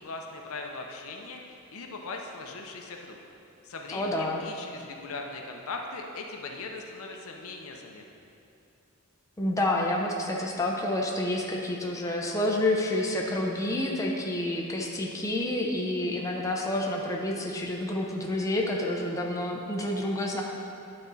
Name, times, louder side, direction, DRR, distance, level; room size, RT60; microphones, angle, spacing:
voice 1, 0.0-3.2 3.6-8.0, left 3 dB, 70° left, 2 dB, 0.7 m, -39 dB
voice 2, 3.9-4.4 9.4-20.4, left 1 dB, 15° left, -2 dB, 0.7 m, -29 dB
11.0 x 4.3 x 4.1 m, 2.8 s
head